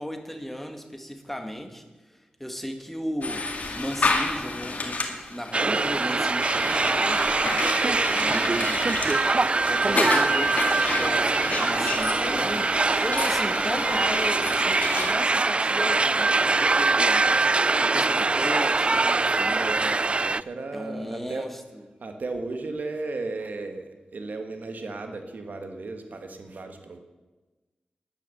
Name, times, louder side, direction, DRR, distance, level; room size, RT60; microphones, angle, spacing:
voice 1, 0.0-1.8 2.1-3.5 3.8-7.3 7.9-9.0 9.6-17.3 17.8-19.8 20.7-21.9, equal, 5° left, 5 dB, 1.8 m, -35 dB
sound 1, 3.2-15.1, left 3 dB, 55° left, 2.1 m, -31 dB
sound 2, 5.5-20.4, right 3 dB, 40° right, 0.3 m, -23 dB
voice 2, 8.2-8.8 19.6-21.5 22.0-23.8 24.1-27.0, right 3 dB, 70° right, 6 dB, 1.5 m, -35 dB
11.0 x 10.5 x 7.0 m, 1.2 s
cardioid pair, 50°, 3 cm